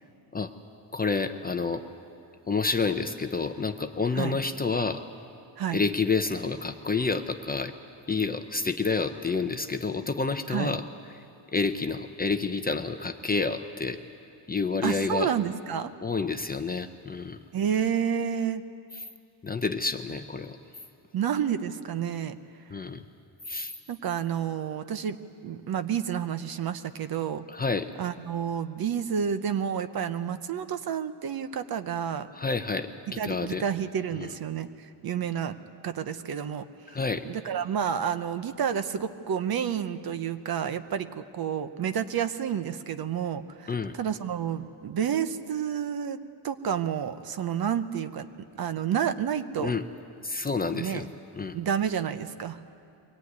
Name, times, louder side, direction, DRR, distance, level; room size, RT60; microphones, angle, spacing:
voice 1, 0.9-1.8 2.5-5.0 5.7-7.7 8.1-10.8 11.1-11.2 11.5-14.0 14.5-15.3 16.0-17.4 19.4-20.6 22.7-23.0 23.5-23.7 27.5-27.9 32.3-32.9 33.2-33.6 34.2-34.3 36.9-37.2 43.7-44.0 49.6-49.8 50.2-51.0 51.3-51.6, left 4 dB, 20° left, 7 dB, 0.6 m, -29 dB
voice 2, 14.8-15.9 17.5-18.6 21.1-22.4 23.9-25.2 25.4-27.4 28.0-32.3 33.2-35.6 35.8-37.0 37.2-46.2 46.4-48.3 48.6-49.8 50.7-51.1 51.5-52.6, right 8 dB, 45° right, 11 dB, 0.9 m, -30 dB
23.0 x 17.5 x 9.5 m, 2.5 s
cardioid pair, 150°, 48 cm